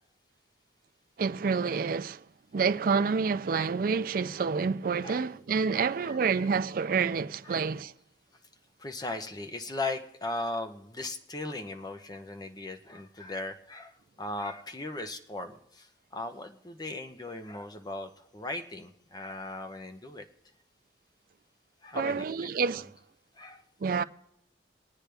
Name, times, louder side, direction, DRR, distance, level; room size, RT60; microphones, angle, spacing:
voice 1, 1.2-2.2 2.5-7.9 21.9-22.9 23.8-24.0, right 5 dB, 50° right, 0.4 m, -28 dB
voice 2, 5.7-6.5 7.4-7.6 8.8-20.2 21.8-22.5 23.4-23.6, left 2 dB, 20° left, 0.8 m, -38 dB
23.5 x 9.0 x 3.4 m
head